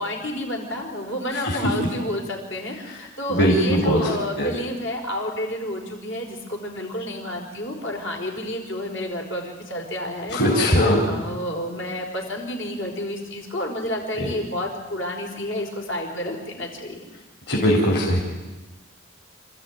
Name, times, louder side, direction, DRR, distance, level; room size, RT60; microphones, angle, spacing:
voice 1, 0.0-10.6 10.9-17.0, left 1 dB, 70° left, 0 dB, 5.0 m, -30 dB
voice 2, 3.3-4.5 10.3-11.1 14.2-14.3 17.5-18.2, equal, 55° left, -2 dB, 4.1 m, -20 dB
27.0 x 14.0 x 9.7 m, 1.2 s
head